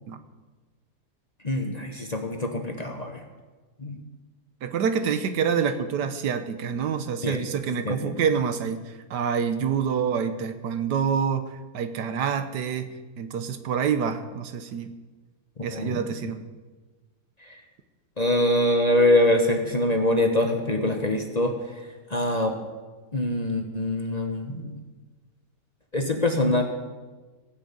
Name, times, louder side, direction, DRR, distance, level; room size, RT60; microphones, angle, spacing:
voice 1, 1.4-3.2 3.8-4.0 7.2-7.4 7.8-8.1 15.7-16.0 17.5-17.6 18.2-21.5 22.1-22.6 23.1-24.7 25.9-26.6, left 1 dB, 30° left, 3 dB, 1.0 m, -24 dB
voice 2, 4.6-14.9 15.6-16.4, right 7 dB, 80° right, 10 dB, 1.5 m, -27 dB
16.5 x 6.3 x 8.5 m, 1.3 s
omnidirectional pair, 1.8 m